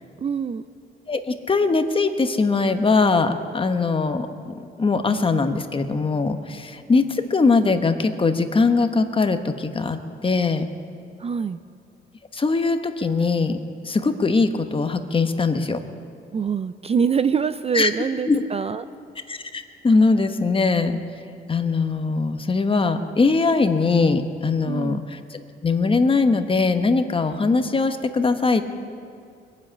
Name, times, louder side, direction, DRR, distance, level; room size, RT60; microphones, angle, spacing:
voice 1, 0.2-0.6 11.2-11.6 16.3-18.8 24.7-25.0, right 6 dB, 30° right, 12 dB, 0.4 m, -24 dB
voice 2, 1.1-10.0 10.2-10.7 12.3-13.6 13.8-15.8 17.7-17.9 18.3-18.4 19.3-21.0 21.5-28.7, left 4 dB, 25° left, 8 dB, 1.1 m, -21 dB
22.0 x 7.5 x 8.6 m, 2.4 s
cardioid pair, 90°, 20 cm